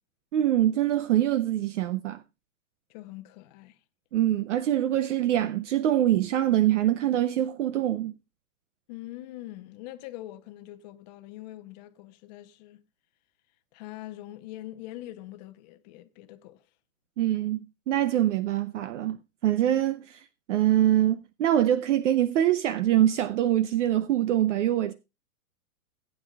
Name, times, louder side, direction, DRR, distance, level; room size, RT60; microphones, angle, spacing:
voice 1, 0.3-2.2 4.1-8.1 17.2-24.9, right 12 dB, 55° right, 0.8 m, -24 dB
voice 2, 2.9-3.8 8.9-12.8 13.7-16.6, left 15 dB, 30° left, 0.8 m, -43 dB
18.0 x 8.9 x 2.3 m
hypercardioid pair, 155°, 43 cm